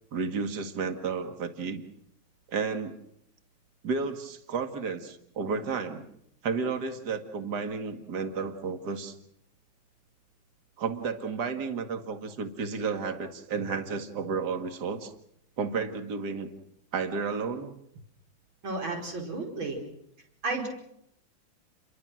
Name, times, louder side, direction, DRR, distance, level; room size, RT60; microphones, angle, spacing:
voice 1, 0.1-1.8 2.5-3.0 3.8-6.0 6.4-9.2 10.8-15.1 15.6-16.5 16.9-17.8, right 5 dB, 55° right, 7 dB, 2.3 m, -32 dB
voice 2, 18.6-19.8 20.4-20.7, right 3 dB, 80° right, 1 dB, 5.6 m, -32 dB
30.0 x 23.0 x 6.2 m, 0.73 s
omnidirectional pair, 2.2 m